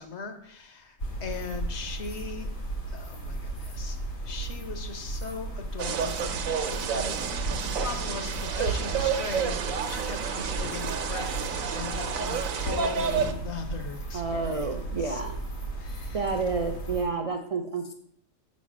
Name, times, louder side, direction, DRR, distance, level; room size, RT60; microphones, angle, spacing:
voice 1, 0.0-2.5 2.9-4.0 4.2-6.3 6.7-15.2 15.8-16.3, left 5 dB, 60° left, 6 dB, 1.2 m, -39 dB
sound 1, 1.0-17.0, right 2 dB, 85° left, 2.2 m, -35 dB
sound 2, 5.8-13.3, right 7 dB, 90° right, 1.1 m, -30 dB
voice 2, 14.1-15.4 16.1-17.9, right 4 dB, 65° right, 4 dB, 0.3 m, -30 dB
6.5 x 4.2 x 6.1 m, 0.69 s
omnidirectional pair, 1.4 m